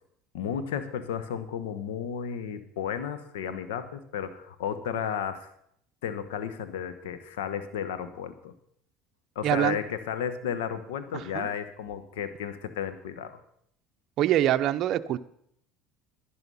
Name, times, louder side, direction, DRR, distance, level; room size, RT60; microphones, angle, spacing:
voice 1, 0.3-5.5 6.0-8.5 9.3-13.4, left 8 dB, 90° left, 11 dB, 1.2 m, -33 dB
voice 2, 9.4-9.8 11.1-11.5 14.2-15.2, right 12 dB, 55° right, 9 dB, 0.6 m, -25 dB
11.5 x 11.0 x 5.5 m, 0.70 s
supercardioid pair, 100°, 0 cm